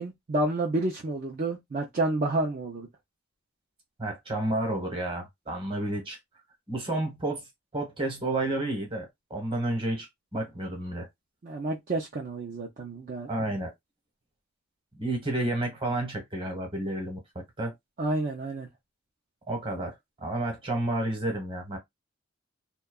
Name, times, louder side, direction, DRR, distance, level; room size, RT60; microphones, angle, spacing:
voice 1, 0.0-2.9 11.4-13.3 18.0-18.7, right 2 dB, 40° right, 0.5 m, -29 dB
voice 2, 4.0-6.2 6.7-7.5 7.7-10.1 10.3-11.1 13.3-13.7 14.9-17.7 19.5-21.8, right 1 dB, 25° right, 1.1 m, -31 dB
2.7 x 2.2 x 2.3 m
head